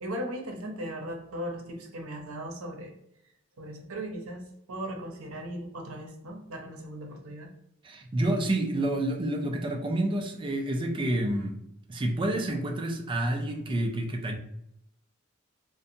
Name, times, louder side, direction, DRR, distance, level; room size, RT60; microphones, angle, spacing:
voice 1, 0.0-2.9 3.6-4.4 4.7-7.5, right 1 dB, 80° right, 2 dB, 0.6 m, -37 dB
voice 2, 7.8-11.6 11.9-14.4, right 1 dB, 25° right, 3 dB, 0.3 m, -29 dB
2.7 x 2.2 x 2.5 m, 0.79 s
head